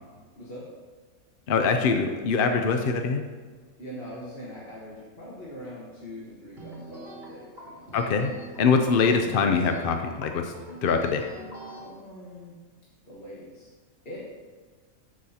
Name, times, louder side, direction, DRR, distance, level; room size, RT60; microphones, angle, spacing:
voice 1, 0.4-0.7 3.8-8.0 11.7-12.6 13.1-13.7 14.0-14.2, equal, 45° left, -6 dB, 1.6 m, -42 dB
voice 2, 1.5-3.2 7.9-8.3 8.6-10.5 10.8-11.2, left 5 dB, 60° left, 5 dB, 0.5 m, -23 dB
sound 1, 6.6-11.8, right 1 dB, 35° right, 2.5 m, -43 dB
13.5 x 6.2 x 2.8 m, 1.5 s
omnidirectional pair, 1.5 m